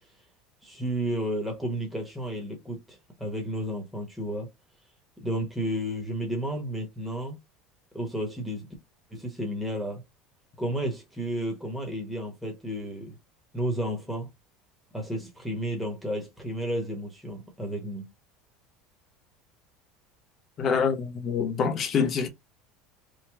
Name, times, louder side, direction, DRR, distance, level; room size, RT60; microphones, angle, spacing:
voice 1, 0.6-4.5 5.2-7.4 7.9-8.7 9.1-10.0 10.6-13.2 13.5-14.3 14.9-18.1, equal, ahead, 0.9 m, -32 dB
voice 2, 20.6-22.3, left 6 dB, 30° left, 0.7 m, -26 dB
3.0 x 2.0 x 3.3 m
cardioid pair, 150°, 0 cm